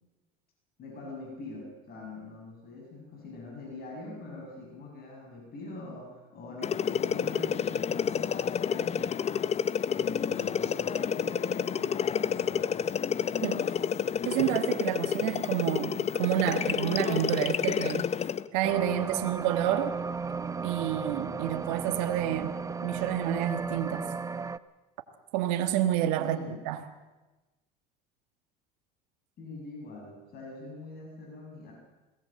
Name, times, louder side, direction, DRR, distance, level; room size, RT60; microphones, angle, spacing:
voice 1, 0.8-9.1 9.9-12.8 26.2-26.6 29.4-31.7, left 2 dB, 50° left, 0 dB, 7.3 m, -43 dB
sound 1, 6.6-18.5, left 8 dB, 30° left, 0.8 m, -29 dB
voice 2, 14.2-18.1 18.5-19.9 20.6-24.1 25.3-26.4 26.6-26.8, right 12 dB, 75° right, 7 dB, 1.6 m, -29 dB
sound 2, 18.6-24.6, right 5 dB, 15° right, 0.7 m, -35 dB
21.5 x 17.5 x 7.6 m, 1.1 s
supercardioid pair, 95°, 21 cm